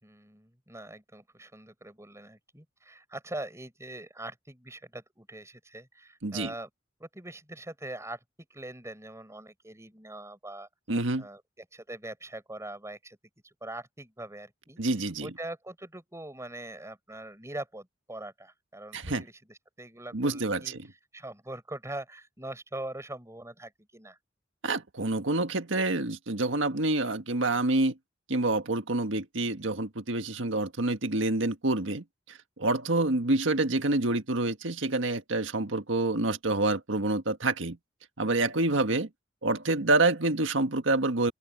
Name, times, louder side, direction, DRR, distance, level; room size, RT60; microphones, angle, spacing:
voice 1, 0.0-6.7 7.0-8.2 8.5-10.7 11.2-13.2 13.4-14.8 15.2-20.7 21.1-24.2, right 1 dB, 15° right, 5.7 m, -42 dB
voice 2, 6.2-6.5 10.9-11.3 14.8-15.3 18.9-19.2 20.1-20.9 24.6-27.9 28.3-37.8 38.2-39.1 39.4-41.3, right 2 dB, 80° right, 1.6 m, -27 dB
open air
head